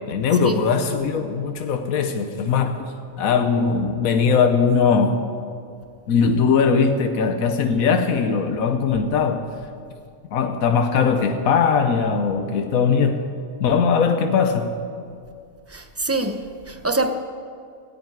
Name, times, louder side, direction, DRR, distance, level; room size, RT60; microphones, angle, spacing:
voice 1, 0.1-5.2 6.1-9.5 10.3-13.2 13.6-14.8, left 5 dB, 80° left, 1.3 m, -20 dB
voice 2, 15.7-17.1, right 2 dB, 15° right, 0.6 m, -25 dB
16.0 x 9.6 x 9.2 m
omnidirectional pair, 1.5 m